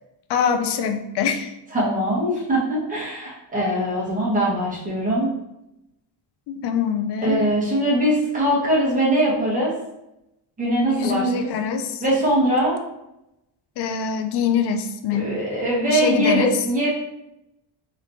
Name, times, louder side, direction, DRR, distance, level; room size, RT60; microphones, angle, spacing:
voice 1, 0.3-1.5 6.5-7.5 10.9-12.0 13.8-15.3 15.9-16.5, left 6 dB, 60° left, 6 dB, 0.5 m, -24 dB
voice 2, 1.7-5.3 7.2-9.7 10.6-11.2 12.0-12.8 15.1-16.9, right 1 dB, 15° right, -6 dB, 1.2 m, -21 dB
3.1 x 3.1 x 2.6 m, 0.87 s
cardioid pair, 140°, 46 cm